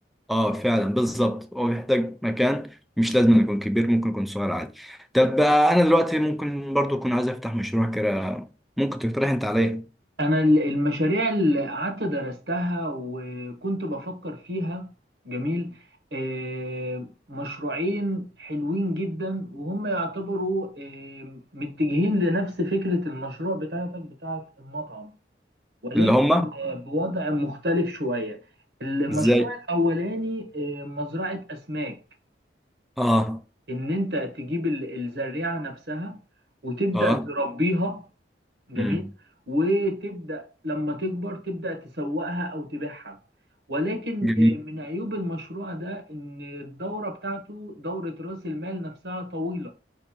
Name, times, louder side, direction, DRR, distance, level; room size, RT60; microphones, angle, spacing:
voice 1, 0.3-2.7 3.0-8.5 8.8-9.8 25.9-26.4 29.1-29.5 33.0-33.4 36.9-37.2 38.8-39.1 44.2-44.6, equal, ahead, 0.4 m, -22 dB
voice 2, 10.2-14.9 15.2-15.8 16.1-25.1 25.9-28.4 28.8-32.0 33.7-36.2 36.6-38.0 38.7-39.0 39.5-43.2 43.7-49.7, equal, 75° right, 1.1 m, -28 dB
5.1 x 2.9 x 3.5 m
head